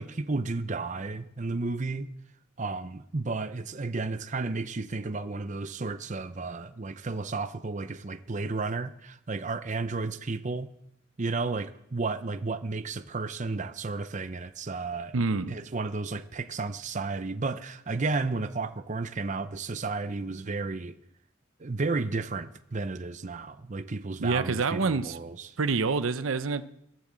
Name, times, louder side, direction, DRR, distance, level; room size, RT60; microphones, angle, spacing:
voice 1, 0.0-2.1 2.6-10.7 11.2-15.1 15.5-21.0 21.6-25.6, right 3 dB, 35° right, 0.6 m, -33 dB
voice 2, 15.1-15.6 24.2-25.2 25.6-26.8, right 4 dB, 75° right, 0.7 m, -27 dB
15.5 x 11.5 x 7.4 m
head